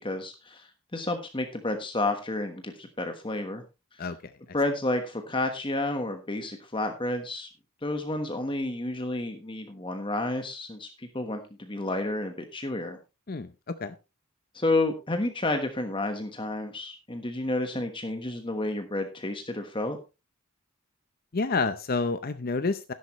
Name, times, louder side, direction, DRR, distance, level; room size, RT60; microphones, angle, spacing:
voice 1, 0.0-3.6 4.5-7.5 7.8-13.0 14.5-20.0, left 2 dB, 25° left, 6 dB, 1.2 m, -30 dB
voice 2, 4.0-4.3 13.3-13.5 13.8-13.9 21.3-22.9, left 4 dB, 45° left, 11 dB, 0.6 m, -29 dB
12.5 x 11.0 x 3.1 m, 0.28 s
head